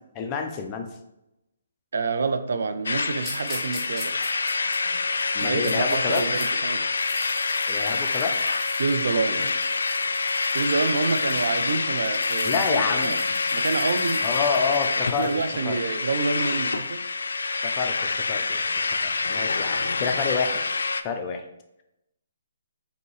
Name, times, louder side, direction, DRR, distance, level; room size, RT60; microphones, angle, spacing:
voice 1, 0.2-0.9 5.3-6.2 7.7-8.4 9.3-9.5 12.4-13.2 14.2-15.3 15.6-15.8 17.6-18.6 19.0-20.6 21.0-21.4, left 5 dB, 20° left, 4 dB, 0.4 m, -28 dB
voice 2, 1.9-4.2 5.4-6.8 8.8-9.5 10.5-13.2 13.5-14.2 15.2-17.0, right 4 dB, 70° right, 9 dB, 0.4 m, -27 dB
sound 1, 2.9-21.0, left 4 dB, 85° left, 0.3 m, -26 dB
sound 2, 3.2-6.5 6.8-15.5, left 1 dB, ahead, 0.9 m, -42 dB
5.4 x 2.7 x 3.1 m, 0.87 s
hypercardioid pair, 165°, 0 cm